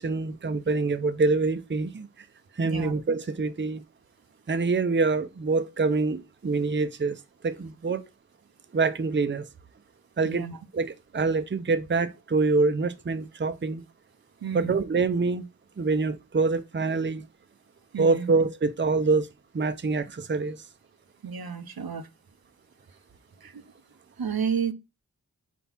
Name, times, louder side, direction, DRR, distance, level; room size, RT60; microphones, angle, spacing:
voice 1, 0.0-2.1 2.6-3.8 4.5-8.0 8.7-9.5 10.2-10.4 10.7-13.8 14.5-15.4 15.8-17.3 18.0-19.3 19.5-20.6, right 4 dB, 30° right, 0.6 m, -25 dB
voice 2, 10.2-10.6 14.4-14.8 17.9-18.3 21.2-22.1 23.4-23.6 24.2-24.7, right 7 dB, 85° right, 0.8 m, -31 dB
4.5 x 4.3 x 5.8 m
wide cardioid pair, 70°, 35 cm